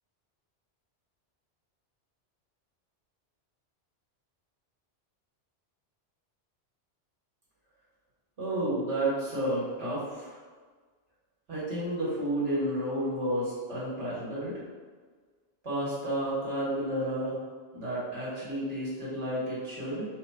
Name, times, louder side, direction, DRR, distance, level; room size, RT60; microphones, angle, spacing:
voice 1, 8.4-10.4 11.5-14.6 15.6-17.4 17.7-20.1, right 1 dB, 85° right, -8 dB, 1.8 m, -31 dB
4.4 x 2.3 x 4.2 m, 1.5 s
omnidirectional pair, 1.2 m